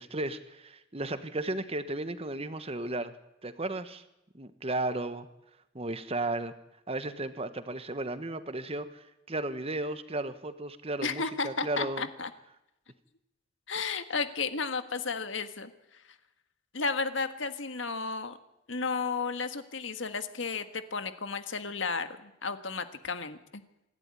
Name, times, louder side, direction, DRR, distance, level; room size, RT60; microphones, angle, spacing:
voice 1, 0.0-3.1 3.4-4.0 4.3-5.3 5.7-6.5 6.9-12.1, right 2 dB, 30° right, 11 dB, 1.3 m, -34 dB
voice 2, 11.0-12.3 13.7-15.7 16.7-18.4 18.7-23.6, left 4 dB, 75° left, 9 dB, 1.6 m, -33 dB
26.5 x 12.0 x 9.7 m, 0.89 s
head